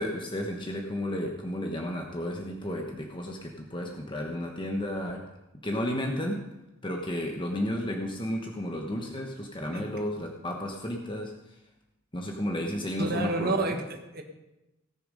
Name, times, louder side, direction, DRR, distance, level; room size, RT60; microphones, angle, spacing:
voice 1, 0.0-5.3 5.6-6.4 6.8-11.6 12.1-13.8, left 1 dB, 25° left, 2 dB, 1.1 m, -33 dB
voice 2, 13.0-14.2, right 2 dB, 50° right, 3 dB, 1.6 m, -29 dB
17.5 x 6.8 x 5.4 m, 0.98 s
head